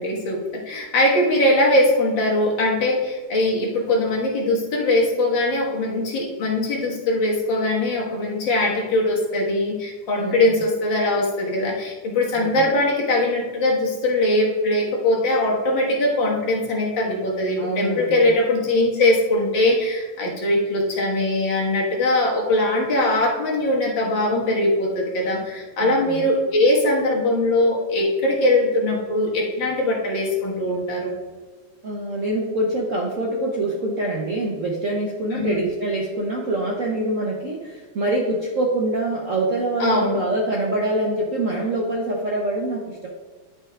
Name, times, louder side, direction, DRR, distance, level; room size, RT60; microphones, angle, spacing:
voice 1, 0.0-31.1 35.3-35.6 39.8-40.2, left 1 dB, 60° left, -2 dB, 2.1 m, -21 dB
voice 2, 17.6-18.3 25.8-26.2 31.8-43.1, right 2 dB, 55° right, -2 dB, 0.9 m, -25 dB
10.5 x 4.6 x 3.7 m, 1.4 s
omnidirectional pair, 2.4 m